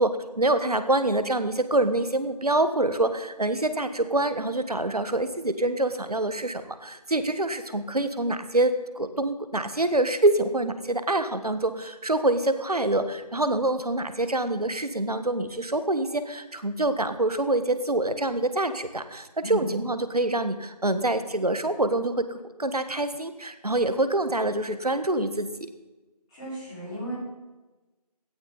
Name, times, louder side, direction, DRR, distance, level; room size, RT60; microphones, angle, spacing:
voice 1, 0.0-25.7, right 2 dB, 65° right, 11 dB, 1.4 m, -26 dB
voice 2, 26.3-27.1, equal, 5° left, -16 dB, 5.0 m, -34 dB
17.0 x 13.5 x 4.1 m, 1.1 s
figure-of-eight pair, 170°, 21 cm